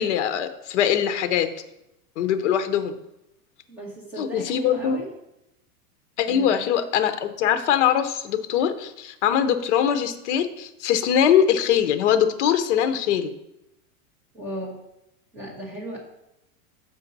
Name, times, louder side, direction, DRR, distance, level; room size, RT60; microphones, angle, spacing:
voice 1, 0.0-1.5 2.2-3.0 4.2-5.0 6.2-13.3, left 9 dB, 50° left, 9 dB, 0.7 m, -22 dB
voice 2, 3.7-5.1 6.3-6.6 14.3-14.8 15.3-16.0, equal, 5° right, -5 dB, 1.0 m, -35 dB
7.1 x 5.3 x 4.0 m, 0.87 s
supercardioid pair, 180°, 45 cm